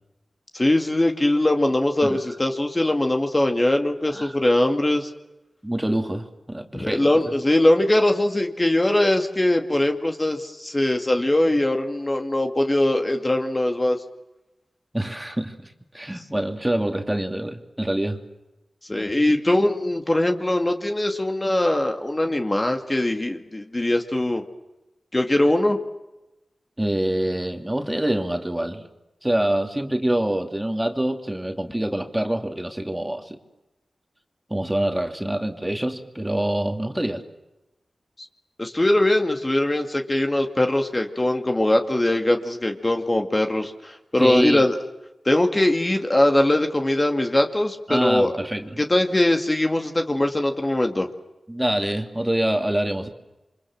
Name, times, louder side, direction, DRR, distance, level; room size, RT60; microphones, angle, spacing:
voice 1, 0.5-5.1 6.7-14.0 18.9-24.4 25.1-25.8 38.6-44.8 45.3-48.3 48.8-51.1, left 1 dB, 25° left, 4 dB, 2.3 m, -21 dB
voice 2, 5.6-7.1 14.9-18.2 26.8-28.8 29.2-33.4 34.5-37.2 44.2-44.6 47.9-48.8 51.5-53.1, right 1 dB, 10° right, 5 dB, 2.8 m, -25 dB
28.5 x 25.0 x 7.4 m, 0.98 s
wide cardioid pair, 70°, 0 cm